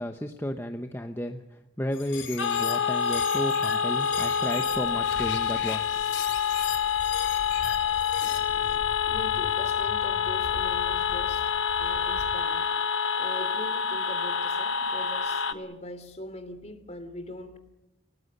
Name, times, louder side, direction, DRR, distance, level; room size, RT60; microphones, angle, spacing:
voice 1, 0.0-5.8, equal, 10° left, 5 dB, 1.0 m, -33 dB
sound 1, 1.9-8.8, left 8 dB, 70° left, 5.1 m, -39 dB
sound 2, 2.4-15.5, left 7 dB, 85° left, 1.5 m, -27 dB
Walk footsteps, 4.9-12.4, equal, 50° right, 4.9 m, -44 dB
voice 2, 9.1-11.5 11.8-12.7 13.2-17.6, left 1 dB, 35° left, 9 dB, 3.0 m, -41 dB
30.0 x 18.5 x 6.8 m, 0.88 s
head